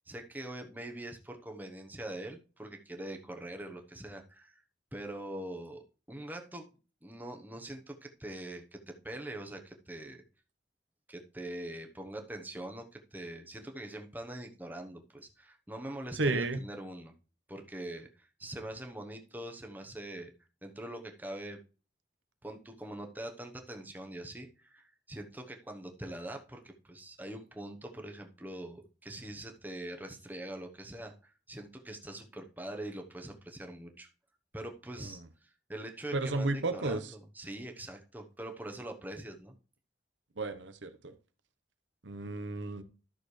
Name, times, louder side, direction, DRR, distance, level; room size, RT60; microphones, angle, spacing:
voice 1, 0.1-4.6 4.9-6.7 7.0-10.2 11.1-17.1 17.5-20.3 20.6-21.6 22.4-34.1 34.5-39.5, right 1 dB, 10° right, 3 dB, 1.0 m, -43 dB
voice 2, 16.2-16.6 35.0-35.2 36.1-37.1 40.4-41.1 42.0-42.8, right 2 dB, 85° right, 10 dB, 1.0 m, -33 dB
12.5 x 6.4 x 3.2 m, 0.35 s
head